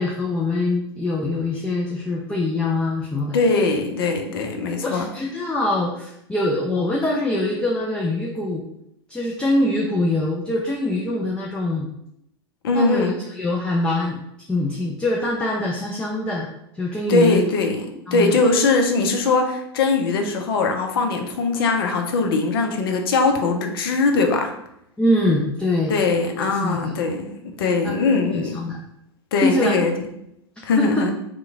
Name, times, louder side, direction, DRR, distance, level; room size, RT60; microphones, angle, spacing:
voice 1, 0.0-3.4 4.8-8.6 9.1-11.9 12.7-14.2 14.5-16.5 16.8-17.4 18.1-18.4 25.0-25.9 26.4-26.9 27.8-27.9 28.3-28.8 29.4-29.7 30.8-31.1, left 2 dB, 5° left, -2 dB, 0.4 m, -23 dB
voice 2, 3.3-5.1 12.6-13.2 17.1-17.9 18.1-24.5 25.9-28.6 29.3-29.9 30.6-31.1, left 3 dB, 60° left, 4 dB, 0.6 m, -21 dB
3.0 x 2.2 x 3.5 m, 0.78 s
figure-of-eight pair, 95°, 14 cm